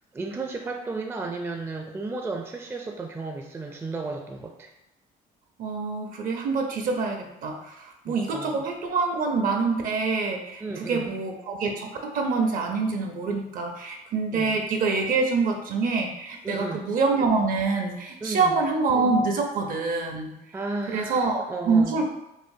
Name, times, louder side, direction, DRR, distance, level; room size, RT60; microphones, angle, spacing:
voice 1, 0.1-4.7 8.1-8.7 10.6-11.1 14.3-14.6 16.4-16.9 18.2-18.6 20.5-22.1, right 3 dB, 15° right, 2 dB, 0.4 m, -34 dB
voice 2, 5.6-20.3 20.9-22.1, right 4 dB, 55° right, 3 dB, 0.6 m, -26 dB
5.0 x 2.0 x 2.6 m, 0.90 s
cardioid pair, 110°, 17 cm